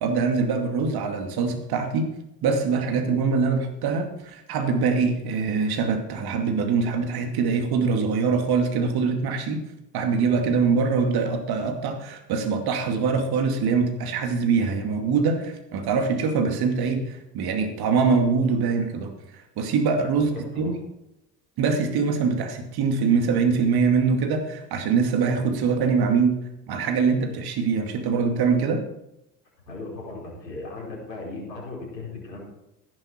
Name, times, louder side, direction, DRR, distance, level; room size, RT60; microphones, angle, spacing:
voice 1, 0.0-2.1 2.4-9.6 9.9-19.1 19.6-20.7 21.6-26.4 26.7-28.8, right 5 dB, 50° right, 5 dB, 2.5 m, -23 dB
voice 2, 20.1-20.7 29.7-32.4, left 3 dB, 90° left, -3 dB, 4.6 m, -37 dB
14.0 x 11.0 x 4.4 m, 0.87 s
hypercardioid pair, 70°, 48 cm